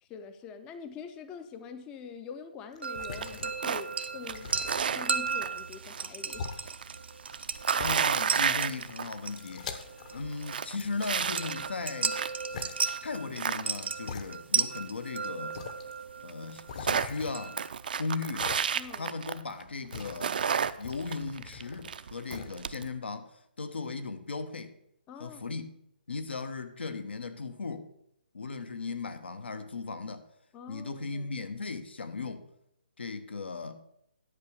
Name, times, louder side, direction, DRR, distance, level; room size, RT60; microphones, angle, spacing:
voice 1, 0.0-4.5 4.9-6.5 18.7-19.1 25.1-25.6 30.5-31.3, left 6 dB, 15° left, 0.5 m, -45 dB
sound 1, 2.7-3.8 4.3-5.6 6.3-6.7 7.3-7.4 7.8-8.5 8.8-10.4 10.8-11.8 12.5-12.7 13.4-13.5 14.0-14.8 15.0-15.1 15.5-15.9 16.7-17.8 18.4-19.0 19.4-22.0 22.3-22.5, left 5 dB, 40° left, 0.9 m, -43 dB
sound 2, 2.8-17.7, right 5 dB, 85° right, 0.8 m, -36 dB
sound 3, 3.2-3.9 4.2-6.1 6.4-9.3 9.7-9.8 10.2-12.4 12.8-14.0 15.6-15.7 15.9-16.0 16.3-19.6 19.9-22.9, right 7 dB, 55° right, 0.5 m, -32 dB
voice 2, 7.8-9.7 10.1-12.2 13.0-15.6 16.2-17.6 18.0-18.5 19.0-20.4 20.8-23.3 23.6-24.7 25.2-25.8 26.1-27.9 28.3-30.3 30.7-32.5 33.0-33.8, left 4 dB, 80° left, 1.1 m, -37 dB
10.5 x 4.9 x 7.0 m
hypercardioid pair, 160°, 6 cm